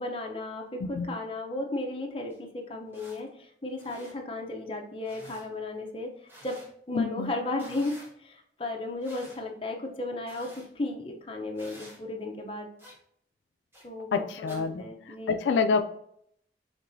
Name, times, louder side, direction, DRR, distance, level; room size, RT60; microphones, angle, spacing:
voice 1, 0.0-6.1 6.4-6.6 6.9-10.5 10.8-12.7 13.8-15.4, left 2 dB, 30° left, 2 dB, 0.7 m, -35 dB
sound 1, 2.3-2.4 2.9-3.2 3.7-4.1 5.0-5.5 6.3-6.7 7.5-8.1 9.0-9.4 10.2-10.7 11.5-12.0 12.8-13.0 13.7-13.8 14.5-14.6, equal, 15° right, 1.0 m, -50 dB
voice 2, 6.9-7.3 14.1-14.8 15.3-15.8, left 5 dB, 85° left, 8 dB, 0.3 m, -27 dB
4.7 x 3.6 x 2.6 m, 0.69 s
head